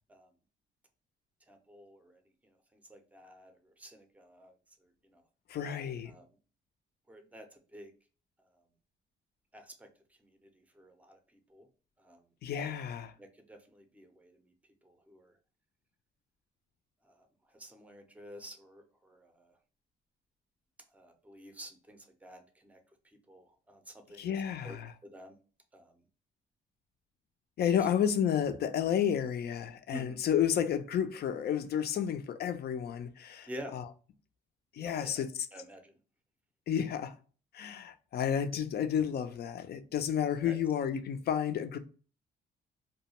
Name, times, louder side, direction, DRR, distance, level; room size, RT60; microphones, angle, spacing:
voice 1, 1.5-4.5 4.8-5.2 6.1-6.3 7.1-7.9 8.5-8.6 9.5-9.9 10.2-11.7 12.0-12.2 13.2-14.5 14.8-15.4 17.0-19.5 20.9-22.8 23.0-24.3 24.6-25.4 25.7-26.0 29.9-30.2 33.5-33.7 34.8-35.3 35.5-36.0 40.4-40.6, equal, 5° right, 0.5 m, -50 dB
voice 2, 5.5-6.1 12.4-13.1 24.2-24.9 27.6-33.8 34.7-35.3 36.7-37.1 37.5-41.8, left 9 dB, 55° left, 0.4 m, -31 dB
2.3 x 2.2 x 2.8 m
cardioid pair, 90°, 20 cm